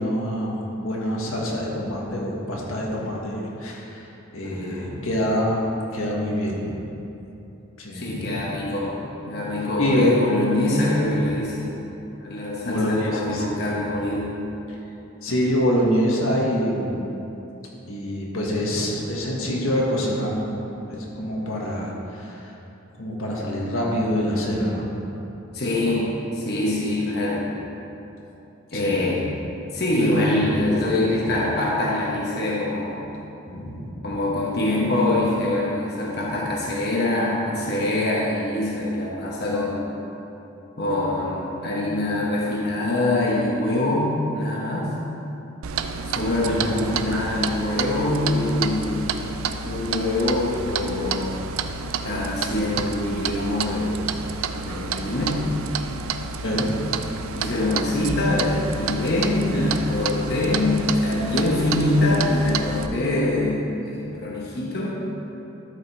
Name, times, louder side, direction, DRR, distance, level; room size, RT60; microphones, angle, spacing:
voice 1, 0.0-4.1 4.3-5.6 5.9-6.7 7.8-8.4 9.8-10.2 12.6-13.6 15.2-17.1 17.9-20.6 20.9-22.5 23.0-24.9 28.7-29.0 30.0-30.5 33.4-33.9 46.5-46.7 47.0-47.3 56.4-56.7, equal, 85° left, -3 dB, 1.6 m, -25 dB
voice 2, 4.4-5.1 7.9-8.9 9.2-11.8 12.2-14.4 25.5-27.5 28.7-29.3 29.7-33.1 34.0-39.8 40.8-45.0 46.1-49.0 49.6-51.5 52.0-54.1 54.6-55.5 57.3-64.9, left 2 dB, 50° left, -4 dB, 1.1 m, -24 dB
Clock, 45.6-62.9, right 5 dB, 90° right, 0.4 m, -30 dB
12.5 x 5.2 x 4.4 m, 3.0 s
head